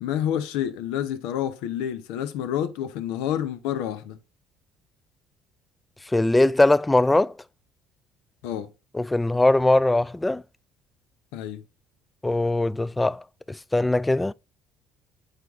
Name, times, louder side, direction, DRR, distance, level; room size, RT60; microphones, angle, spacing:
voice 1, 0.0-4.2 8.4-8.7 11.3-11.6, left 10 dB, 75° left, 0.8 m, -28 dB
voice 2, 6.1-7.3 8.9-10.4 12.2-14.3, left 2 dB, 15° left, 0.3 m, -21 dB
8.3 x 4.6 x 3.6 m
hypercardioid pair, 60°, 0 cm